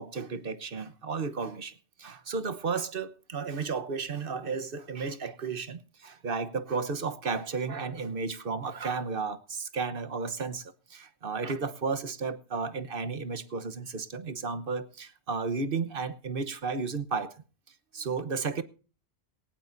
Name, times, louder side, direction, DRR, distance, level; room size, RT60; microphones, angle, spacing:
voice 1, 0.0-17.3 17.9-18.6, right 4 dB, 55° right, 1.3 m, -33 dB
18.0 x 17.5 x 2.6 m
omnidirectional pair, 1.1 m